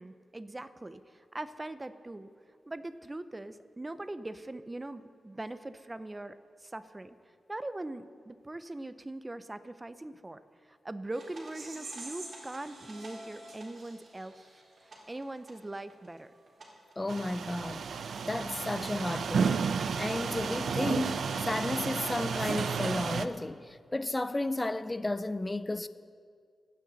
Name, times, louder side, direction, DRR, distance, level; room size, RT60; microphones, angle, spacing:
voice 1, 0.0-2.3 2.7-7.2 7.5-14.5 14.8-16.3, right 2 dB, 20° right, 0.6 m, -41 dB
sound 1, 11.1-18.7 19.1-20.7, right 2 dB, 50° right, 3.8 m, -49 dB
voice 2, 17.0-17.8 18.2-19.6 20.0-25.9, left 2 dB, 20° left, 0.6 m, -33 dB
sound 2, 17.1-23.3, right 6 dB, 75° right, 0.6 m, -32 dB
24.5 x 9.4 x 4.1 m
cardioid pair, 80°, 0 cm